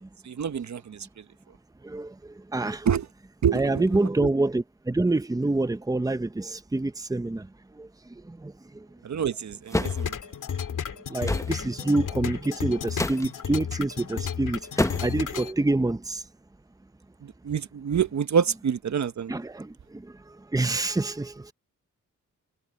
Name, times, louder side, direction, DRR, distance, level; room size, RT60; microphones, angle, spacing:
voice 1, 0.2-1.1 2.8-3.1 3.4-4.3 9.0-10.2 17.2-19.3, right 7 dB, 60° right, 1.1 m, -27 dB
voice 2, 1.8-2.9 3.5-8.9 11.1-16.2 19.3-21.5, right 2 dB, 10° right, 1.0 m, -27 dB
sound 1, 9.7-10.0 11.2-11.5 12.9-13.3 14.8-15.2, left 1 dB, 10° left, 1.2 m, -27 dB
sound 2, 9.8-15.5, left 7 dB, 70° left, 2.1 m, -33 dB
cardioid pair, 65°, 32 cm